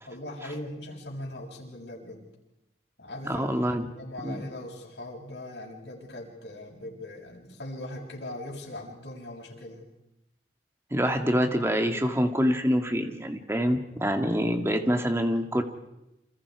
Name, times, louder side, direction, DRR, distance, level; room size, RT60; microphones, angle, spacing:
voice 1, 0.0-2.3 3.0-9.9, left 1 dB, 75° left, -1 dB, 7.2 m, -40 dB
voice 2, 3.2-3.8 4.2-4.5 10.9-15.6, equal, 15° right, 5 dB, 2.1 m, -26 dB
29.0 x 27.5 x 4.9 m, 0.92 s
head